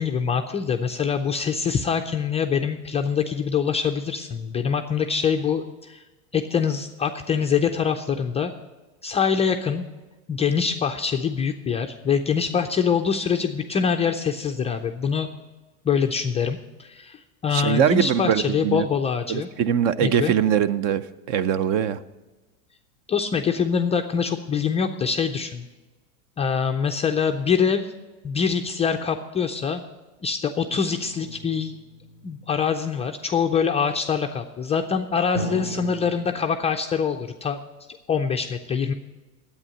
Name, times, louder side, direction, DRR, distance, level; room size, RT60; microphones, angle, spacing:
voice 1, 0.0-6.0 6.3-8.5 9.0-9.9 10.3-15.3 15.8-19.5 20.0-20.3 23.1-25.7 26.4-27.9 28.2-29.8 30.2-31.8 32.2-37.6 38.1-38.9, left 6 dB, 15° left, 4 dB, 0.3 m, -24 dB
voice 2, 17.5-18.9 19.3-22.0, right 9 dB, 45° right, 16 dB, 0.6 m, -22 dB
sound 1, 31.0-32.8 35.3-36.3, equal, 60° right, 2.4 m, -35 dB
9.8 x 8.5 x 7.6 m, 1.2 s
supercardioid pair, 120°, 42 cm